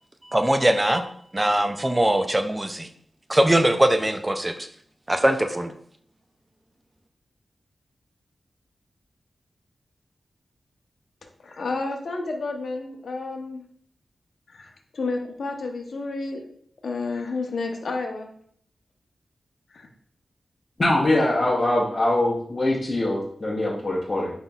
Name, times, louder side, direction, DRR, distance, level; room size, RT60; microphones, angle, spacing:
voice 1, 0.3-1.0 1.3-2.9 3.3-4.5 5.1-5.7, right 1 dB, 15° right, 7 dB, 0.4 m, -21 dB
voice 2, 11.4-13.6 14.5-16.5 16.8-18.3 19.7-19.9, left 3 dB, 65° left, 3 dB, 0.8 m, -31 dB
voice 3, 20.8-24.3, left 1 dB, 30° left, -7 dB, 0.9 m, -23 dB
5.6 x 3.9 x 2.3 m, 0.62 s
wide cardioid pair, 170°, 0 cm